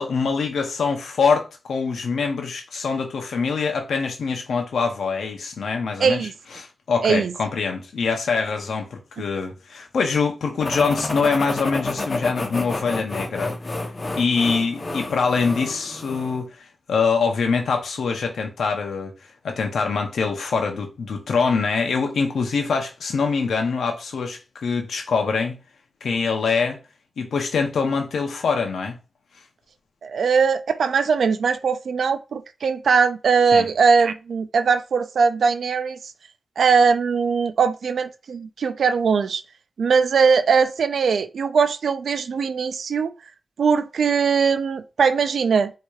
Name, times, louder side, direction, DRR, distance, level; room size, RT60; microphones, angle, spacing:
voice 1, 0.0-6.2 6.5-13.6 14.1-25.6 26.0-26.8 27.2-29.0 33.5-33.7, left 5 dB, 90° left, 0.6 m, -24 dB
voice 2, 6.0-6.3 7.0-7.3 30.0-36.0 36.6-39.4 39.8-43.1 43.6-45.7, right 5 dB, 85° right, 0.3 m, -20 dB
sound 1, 10.6-16.4, left 2 dB, 40° left, 0.8 m, -30 dB
4.5 x 2.8 x 2.3 m
cardioid pair, 55°, 0 cm